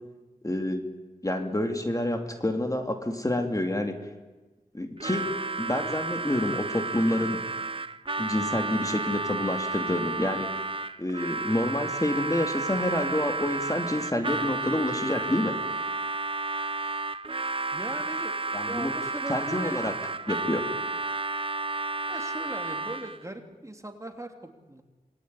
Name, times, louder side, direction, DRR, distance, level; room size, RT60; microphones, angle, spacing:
voice 1, 0.4-0.8 1.2-4.1 4.7-5.3 5.6-7.4 8.2-10.6 11.0-15.6 18.5-18.9 19.3-19.9 20.3-20.6, left 1 dB, 20° left, 5 dB, 2.7 m, -28 dB
Harmonica, 5.0-23.2, right 3 dB, 35° right, 0.9 m, -32 dB
voice 2, 17.7-18.4 18.7-19.8 22.1-24.8, right 1 dB, 20° right, 5 dB, 3.2 m, -39 dB
27.0 x 21.0 x 9.7 m, 1.2 s
wide cardioid pair, 70°, 15 cm